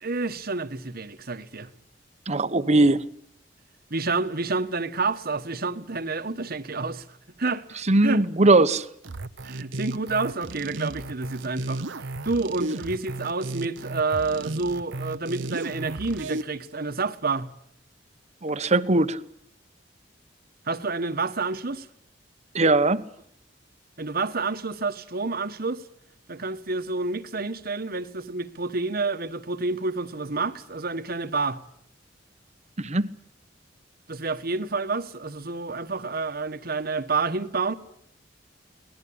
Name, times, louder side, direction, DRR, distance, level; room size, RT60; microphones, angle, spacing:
voice 1, 0.0-1.7 3.9-8.2 9.4-17.5 20.6-21.9 24.0-25.8 26.3-31.6 34.1-37.7, right 3 dB, 55° right, 1.4 m, -29 dB
voice 2, 2.3-3.0 7.9-8.9 18.4-19.2 22.5-23.0 32.8-33.1, right 2 dB, 35° right, 1.1 m, -20 dB
sound 1, 9.0-16.4, right 2 dB, 80° right, 1.0 m, -34 dB
24.0 x 19.0 x 8.8 m
head